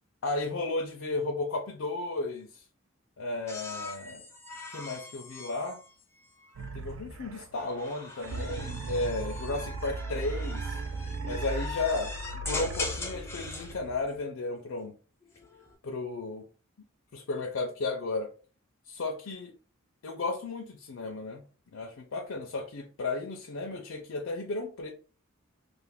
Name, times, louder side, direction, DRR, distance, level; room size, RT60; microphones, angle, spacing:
voice 1, 0.2-2.6 3.2-4.2 4.7-5.8 6.7-10.8 11.3-14.9 15.8-16.4 17.1-18.3 18.9-19.5 20.0-24.9, left 3 dB, 75° left, 2 dB, 0.5 m, -34 dB
sound 1, 3.5-6.7 7.5-13.7 15.2-15.7, left 3 dB, 15° left, 0.6 m, -41 dB
sound 2, 6.6-7.7 8.2-14.2, right 3 dB, 70° right, 0.4 m, -37 dB
2.5 x 2.5 x 3.4 m, 0.37 s
head